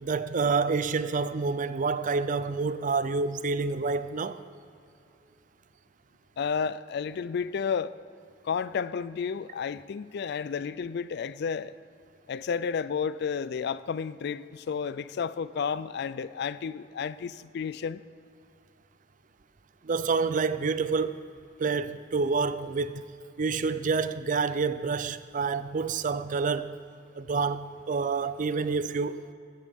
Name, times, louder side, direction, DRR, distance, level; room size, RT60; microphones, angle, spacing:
voice 1, 0.0-4.4 19.8-21.2 21.6-23.0 23.4-26.8 27.2-29.3, right 4 dB, 45° right, 0.5 m, -28 dB
voice 2, 6.4-7.9 8.4-11.7 12.3-18.0, left 6 dB, 60° left, 0.4 m, -31 dB
16.0 x 13.0 x 3.6 m
head